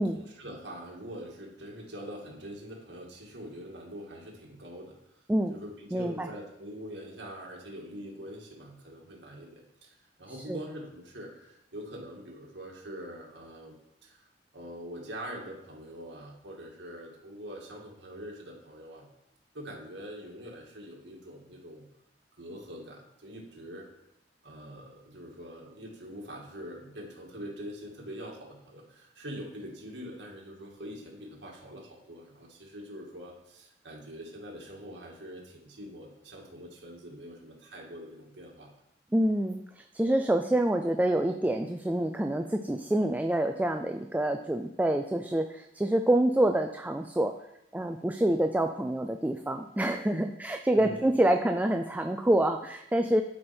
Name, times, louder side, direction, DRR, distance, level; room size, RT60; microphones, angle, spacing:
voice 1, 0.0-5.0 5.5-14.2 14.5-19.1 19.5-21.9 22.4-23.9 24.4-38.7 50.7-51.0, equal, 70° right, -2 dB, 2.2 m, -44 dB
voice 2, 5.9-6.3 10.3-10.6 39.1-47.3 47.7-53.2, right 1 dB, 10° right, 5 dB, 0.3 m, -27 dB
11.0 x 5.0 x 4.4 m, 0.85 s
head